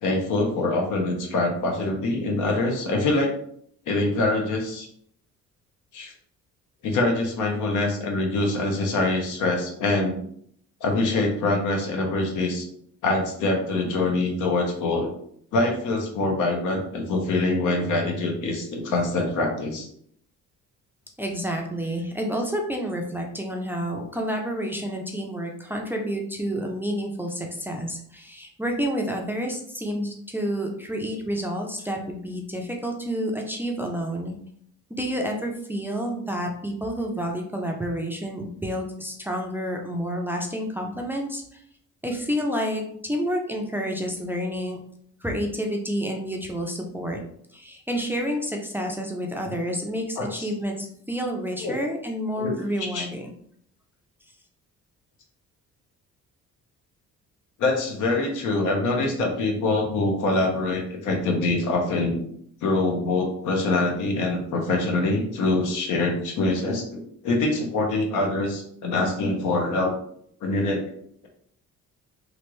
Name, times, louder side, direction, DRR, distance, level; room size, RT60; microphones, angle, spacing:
voice 1, 0.0-3.3 3.9-4.9 5.9-6.1 6.8-10.2 10.8-12.7 13.0-15.1 15.5-19.9 50.2-50.3 51.6-51.8 52.4-52.5 52.8-53.0 57.6-62.2 62.6-69.9 70.4-70.9, left 2 dB, 80° left, 1 dB, 0.9 m, -24 dB
voice 2, 21.2-34.4 34.9-41.6 42.0-44.8 45.2-47.2 47.5-53.3, equal, 5° right, 1 dB, 0.4 m, -29 dB
3.2 x 2.5 x 3.0 m, 0.66 s
cardioid pair, 125°, 30 cm